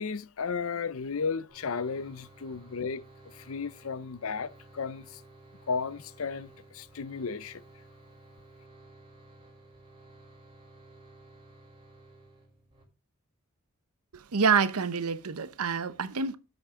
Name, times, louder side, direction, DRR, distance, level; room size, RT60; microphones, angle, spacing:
voice 1, 0.0-5.2 5.7-7.6, left 5 dB, 65° left, 0.6 m, -34 dB
sound 1, 1.5-12.8, right 2 dB, 25° right, 3.7 m, -54 dB
voice 2, 14.1-16.4, right 5 dB, 85° right, 0.8 m, -27 dB
10.5 x 7.9 x 3.7 m
head